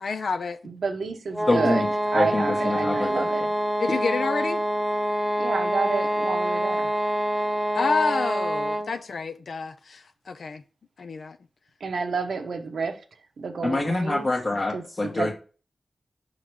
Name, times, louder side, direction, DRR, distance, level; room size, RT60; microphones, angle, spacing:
voice 1, 0.0-0.6 3.8-4.6 7.7-10.6 11.0-11.4 15.1-15.2, left 4 dB, 80° left, 0.5 m, -28 dB
voice 2, 0.6-3.5 5.4-6.9 11.8-13.0 13.4-14.3 14.7-14.8 15.1-15.3, right 4 dB, 90° right, 1.0 m, -29 dB
sound 1, 1.3-9.0, equal, 5° right, 0.8 m, -26 dB
voice 3, 1.5-1.9 2.1-3.3 13.6-15.3, left 2 dB, 40° left, 1.2 m, -25 dB
5.6 x 3.8 x 4.7 m
cardioid pair, 65°, 0 cm